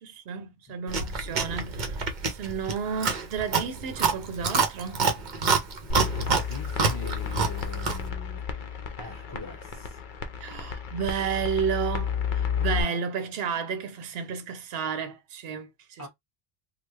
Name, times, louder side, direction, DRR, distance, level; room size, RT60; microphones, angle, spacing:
voice 1, 0.0-5.1 10.4-16.1, right 7 dB, 75° right, 0.9 m, -32 dB
Chewing mastication, 0.9-8.1, right 5 dB, 50° right, 0.8 m, -27 dB
sound 1, 5.9-12.8, left 7 dB, 55° left, 0.7 m, -32 dB
voice 2, 6.1-8.4 9.0-10.0 16.0-16.1, left 3 dB, 20° left, 0.9 m, -42 dB
3.2 x 2.3 x 3.2 m
omnidirectional pair, 1.0 m